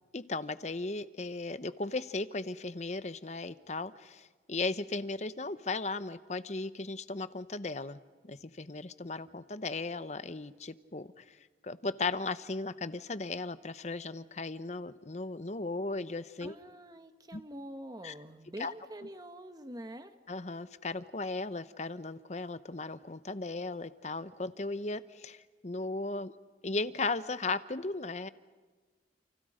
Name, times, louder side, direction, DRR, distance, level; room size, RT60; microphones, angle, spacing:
voice 1, 0.1-16.5 17.3-17.4 18.0-18.1 18.6-18.7 20.3-28.3, left 3 dB, 40° left, 14 dB, 0.9 m, -36 dB
voice 2, 16.4-20.1, right 1 dB, 20° right, 8 dB, 1.4 m, -45 dB
29.5 x 29.5 x 5.1 m, 1.4 s
head